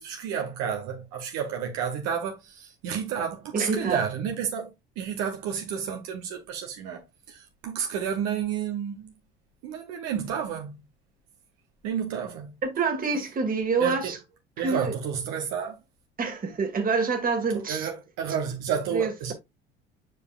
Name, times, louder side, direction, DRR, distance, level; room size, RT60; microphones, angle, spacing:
voice 1, 0.0-9.1 9.6-10.8 11.8-12.5 13.8-14.1 14.6-15.8 17.5-19.3, right 7 dB, 60° right, 1.3 m, -31 dB
voice 2, 3.5-4.0 12.6-14.2 14.6-14.9 16.2-17.9 18.9-19.3, right 4 dB, 30° right, 1.9 m, -27 dB
7.9 x 5.0 x 2.4 m
hypercardioid pair, 65°, 29 cm